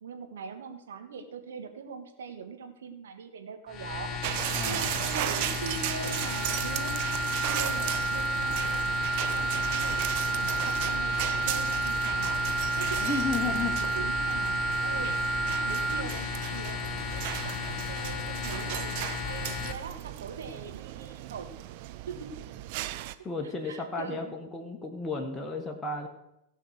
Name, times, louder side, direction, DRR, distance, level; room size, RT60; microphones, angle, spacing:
voice 1, 0.0-8.9 9.3-11.2 11.5-12.5 12.8-15.2 15.5-21.5 22.1-22.3 23.4-24.3, right 5 dB, 65° right, 5 dB, 1.7 m, -42 dB
sound 1, 3.7-19.7, left 7 dB, 30° left, 1.1 m, -35 dB
sound 2, 4.2-23.1, right 15 dB, 45° right, 0.6 m, -36 dB
voice 2, 4.5-5.0 13.0-13.7 23.2-26.1, left 4 dB, 15° left, 1 dB, 1.4 m, -33 dB
sound 3, 6.1-16.0, right 4 dB, 5° right, 0.3 m, -31 dB
17.0 x 5.6 x 6.4 m, 0.85 s
figure-of-eight pair, 90°, 0 cm